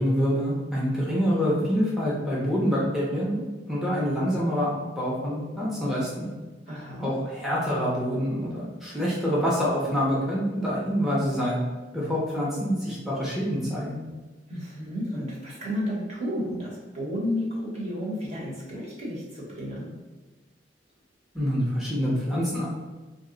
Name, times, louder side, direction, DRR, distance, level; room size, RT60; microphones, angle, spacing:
voice 1, 0.0-3.4 3.7-4.7 5.0-6.3 7.0-11.6 11.9-14.0 21.3-22.7, equal, ahead, -7 dB, 0.6 m, -26 dB
voice 2, 6.7-7.1 14.5-19.9, equal, 40° right, -5 dB, 1.0 m, -32 dB
2.7 x 2.1 x 3.7 m, 1.3 s
head